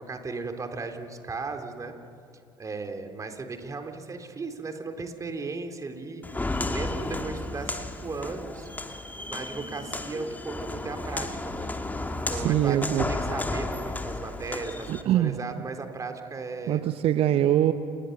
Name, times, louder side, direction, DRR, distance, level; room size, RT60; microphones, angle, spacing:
voice 1, 0.1-1.9 2.6-8.7 9.2-11.8 12.3-14.9 15.1-16.8, right 4 dB, 25° right, 6 dB, 3.6 m, -36 dB
Walk footsteps, 6.2-15.0, left 2 dB, 15° left, 2.2 m, -33 dB
voice 2, 12.3-13.1 14.9-15.4 16.7-17.7, right 12 dB, 45° right, 10 dB, 1.1 m, -23 dB
29.5 x 29.5 x 6.8 m, 2.5 s
figure-of-eight pair, 60°, 13 cm